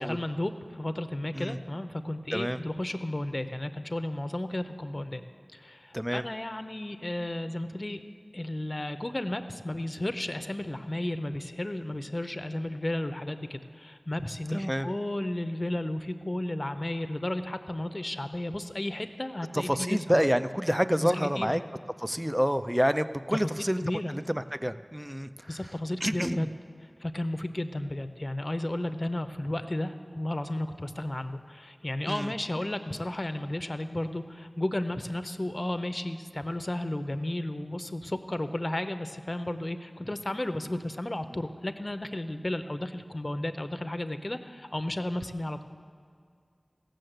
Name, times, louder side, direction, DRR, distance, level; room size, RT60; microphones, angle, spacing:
voice 1, 0.0-5.2 5.5-8.0 8.3-20.3 21.0-21.6 23.3-23.4 23.8-24.2 25.5-26.5 27.0-45.7, left 1 dB, 40° left, 9 dB, 0.7 m, -33 dB
voice 2, 14.5-14.9 19.5-21.6 22.0-23.8 24.1-25.5 26.0-26.5 32.1-32.3, equal, 10° right, 11 dB, 0.4 m, -28 dB
15.5 x 6.5 x 7.9 m, 2.2 s
wide cardioid pair, 50°, 0 cm